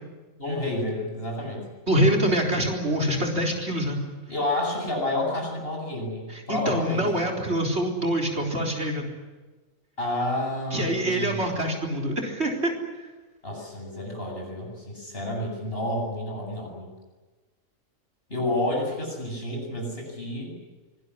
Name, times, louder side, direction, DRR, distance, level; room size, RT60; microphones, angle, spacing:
voice 1, 0.4-1.6 4.3-7.1 10.0-11.7 13.4-16.9 18.3-20.5, left 1 dB, 45° left, 0 dB, 8.3 m, -30 dB
voice 2, 1.9-4.0 6.3-9.1 10.7-12.7, right 1 dB, 50° right, 3 dB, 4.4 m, -25 dB
25.5 x 20.0 x 9.9 m, 1.2 s
omnidirectional pair, 1.4 m